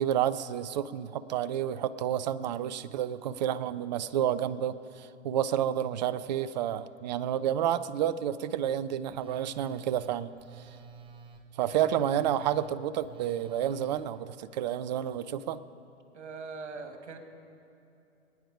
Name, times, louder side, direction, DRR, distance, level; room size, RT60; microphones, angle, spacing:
voice 1, 0.0-10.3 11.6-15.6, right 10 dB, 35° right, 14 dB, 0.5 m, -30 dB
Telephone, 9.1-14.0, right 7 dB, 15° right, 0.8 m, -50 dB
voice 2, 11.5-11.9 16.1-17.2, right 4 dB, 65° right, 6 dB, 1.9 m, -42 dB
21.5 x 9.5 x 4.9 m, 2.7 s
figure-of-eight pair, 115°, 37 cm